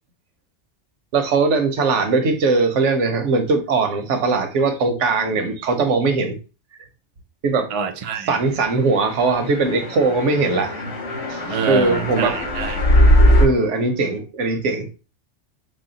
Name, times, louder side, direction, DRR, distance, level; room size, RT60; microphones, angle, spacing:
voice 1, 1.1-6.4 7.4-7.7 8.3-10.8 11.3-12.4 13.4-14.9, right 3 dB, 85° right, 1.1 m, -20 dB
voice 2, 7.7-8.4 11.5-12.8, right 5 dB, 60° right, 0.3 m, -26 dB
sound 1, 9.0-13.5, equal, 65° left, 1.6 m, -19 dB
4.1 x 2.1 x 3.9 m
omnidirectional pair, 1.2 m